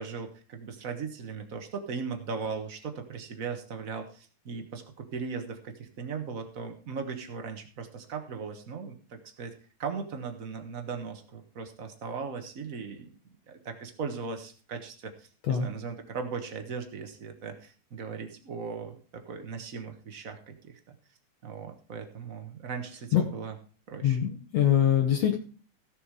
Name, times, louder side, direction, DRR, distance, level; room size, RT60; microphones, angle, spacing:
voice 1, 0.0-9.5 9.8-13.1 13.5-20.8 21.4-23.6 23.9-24.2, right 5 dB, 55° right, 6 dB, 0.9 m, -38 dB
voice 2, 24.0-25.4, left 10 dB, 65° left, 3 dB, 2.1 m, -23 dB
15.5 x 7.1 x 4.8 m, 0.39 s
omnidirectional pair, 3.6 m